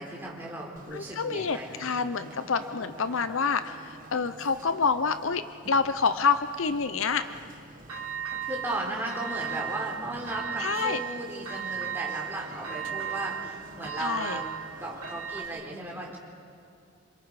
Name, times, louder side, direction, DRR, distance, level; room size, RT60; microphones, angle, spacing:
voice 1, 0.0-2.0 8.5-14.5 14.8-16.2, right 1 dB, 10° right, -3 dB, 4.0 m, -36 dB
Conversation, 0.8-15.6, right 2 dB, 40° right, 1.6 m, -50 dB
voice 2, 0.9-5.4 5.7-7.2 10.6-11.0 14.0-14.4, left 5 dB, 65° left, 11 dB, 0.7 m, -27 dB
sound 1, 7.9-8.8 9.1-9.9 10.3-11.1 11.5-15.4, right 8 dB, 85° right, 2.2 m, -35 dB
27.5 x 26.5 x 4.9 m, 2.3 s
head